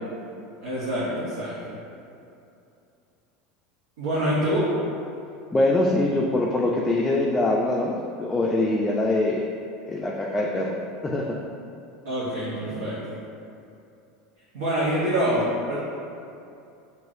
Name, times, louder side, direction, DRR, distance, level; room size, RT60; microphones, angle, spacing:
voice 1, 0.6-1.8 4.0-4.7 12.0-13.2 14.5-15.8, equal, 75° right, -10 dB, 0.9 m, -26 dB
voice 2, 5.5-9.5 9.9-10.8 11.0-11.4, left 2 dB, 20° left, -2 dB, 0.4 m, -23 dB
4.6 x 2.8 x 2.6 m, 2.6 s
hypercardioid pair, 80°, 0 cm